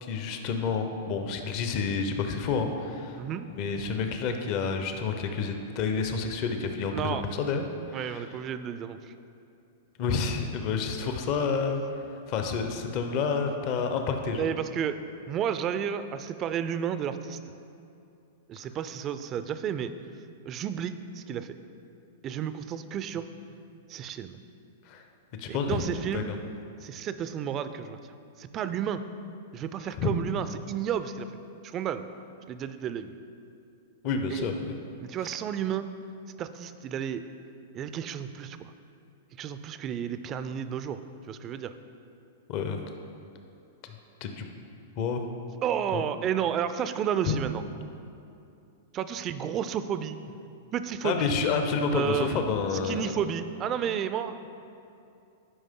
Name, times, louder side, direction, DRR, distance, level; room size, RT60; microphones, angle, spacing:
voice 1, 0.0-3.2 3.5-7.6 7.9-8.3 10.0-11.8 12.3-14.5 24.9-25.0 25.4-25.8 26.1-26.4 30.0-30.1 34.0-34.7 42.5-42.8 44.2-44.5 45.0-45.3 45.9-46.0 47.3-47.4 51.0-53.2, left 5 dB, 45° left, 5 dB, 0.8 m, -29 dB
voice 2, 6.9-7.2 7.9-9.1 14.4-15.0 15.3-17.4 18.5-19.9 20.5-21.6 22.2-23.3 23.9-24.4 25.5-26.4 26.8-28.0 28.4-29.0 29.5-31.3 31.6-32.1 32.5-33.1 34.3-34.5 35.0-35.9 36.4-37.2 37.7-38.7 39.4-41.0 41.3-41.7 45.6-47.6 48.9-50.2 50.7-51.3 51.9-52.4 52.7-54.5, right 8 dB, 35° right, 11 dB, 0.4 m, -32 dB
11.0 x 5.1 x 3.7 m, 2.6 s
hypercardioid pair, 120°, 0 cm